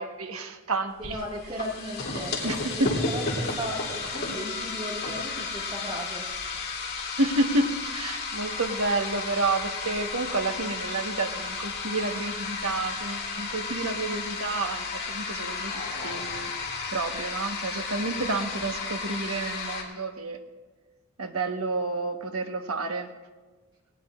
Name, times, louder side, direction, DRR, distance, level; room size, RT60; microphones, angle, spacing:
voice 1, 0.0-1.2 2.4-2.9 7.2-15.7 16.0-16.5 16.9-20.4 21.2-23.1, right 2 dB, 90° right, 5 dB, 1.3 m, -30 dB
sound 1, 1.0-19.8, left 4 dB, 45° left, 2.7 m, -33 dB
voice 2, 1.0-6.3, equal, 25° right, -2 dB, 1.9 m, -36 dB
19.0 x 18.5 x 2.5 m, 1.3 s
head